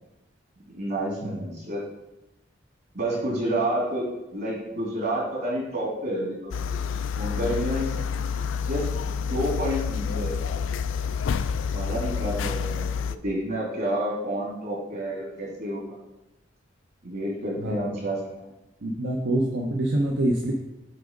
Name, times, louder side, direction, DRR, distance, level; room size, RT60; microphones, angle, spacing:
voice 1, 0.7-1.8 2.9-4.1 4.3-6.5 7.2-7.9 8.6-8.9 9.2-10.3 11.7-15.8 17.0-18.5, right 1 dB, 60° right, -4 dB, 2.5 m, -29 dB
sound 1, 6.5-13.2, left 6 dB, 90° left, 0.3 m, -28 dB
voice 2, 17.6-18.0 18.8-20.5, right 1 dB, 80° right, -1 dB, 0.8 m, -26 dB
7.7 x 3.5 x 5.1 m, 0.98 s
head